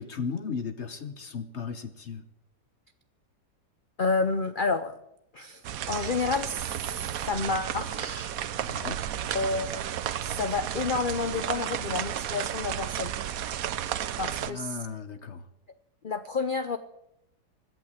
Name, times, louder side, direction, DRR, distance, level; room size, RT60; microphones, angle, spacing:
voice 1, 0.0-2.2 8.6-9.0 14.4-15.5, left 6 dB, 50° left, 11 dB, 1.0 m, -36 dB
voice 2, 4.0-5.0 5.3-6.7 7.2-8.3 9.3-9.9 10.2-13.1 14.2-14.8 16.0-16.8, left 4 dB, 70° left, 11 dB, 0.4 m, -30 dB
sound 1, 5.6-14.5, right 10 dB, 65° right, 1.1 m, -33 dB
17.0 x 11.5 x 7.3 m, 0.82 s
omnidirectional pair, 1.8 m